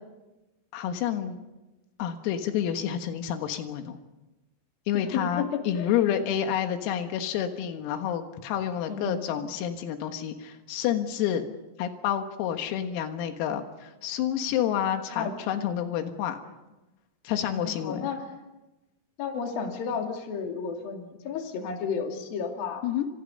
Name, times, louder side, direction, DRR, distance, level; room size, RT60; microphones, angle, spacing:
voice 1, 0.7-1.4 2.0-4.0 4.9-11.5 11.8-16.4 17.3-18.1 22.8-23.1, left 10 dB, 85° left, 6 dB, 4.2 m, -29 dB
voice 2, 4.9-5.9 8.9-9.3 15.1-15.3 17.5-18.2 19.2-22.8, left 6 dB, 50° left, 3 dB, 4.0 m, -32 dB
29.5 x 26.5 x 5.5 m, 1.0 s
omnidirectional pair, 6.0 m